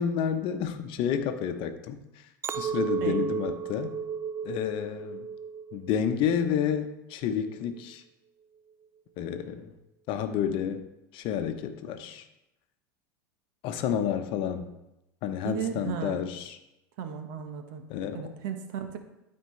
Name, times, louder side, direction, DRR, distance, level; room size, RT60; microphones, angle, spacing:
voice 1, 0.0-2.0 2.5-4.0 4.4-5.3 5.7-8.0 9.2-9.7 10.1-10.8 11.1-12.2 13.6-14.7 15.2-16.6 17.9-18.3, left 8 dB, 55° left, 8 dB, 0.9 m, -30 dB
Chink clink, 2.4-6.8 7.2-7.7, right 6 dB, 25° right, 0.3 m, -34 dB
voice 2, 15.4-16.3 17.0-17.8 18.1-19.0, right 8 dB, 70° right, 7 dB, 1.1 m, -35 dB
13.0 x 4.4 x 3.2 m, 0.91 s
hypercardioid pair, 95°, 10 cm